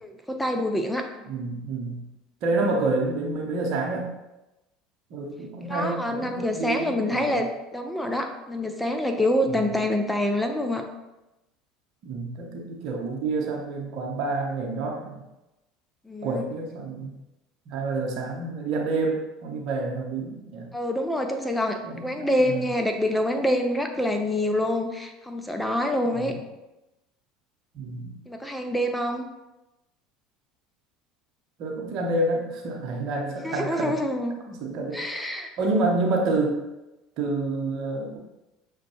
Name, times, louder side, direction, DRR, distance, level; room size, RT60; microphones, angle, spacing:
voice 1, 0.0-1.1 5.7-10.9 16.1-16.4 20.7-26.3 28.3-29.3 33.4-34.4 34.9-35.5, left 1 dB, 10° left, 5 dB, 0.5 m, -26 dB
voice 2, 1.3-2.0 2.4-4.1 5.1-7.4 9.5-9.6 12.0-15.2 16.2-17.1 17.7-20.7 21.8-22.7 26.2-26.4 27.7-28.2 31.6-33.9 34.5-35.0 35.6-36.6 37.2-38.2, right 3 dB, 60° right, 1 dB, 0.7 m, -28 dB
6.0 x 2.2 x 2.8 m, 0.98 s
hypercardioid pair, 70°, 0 cm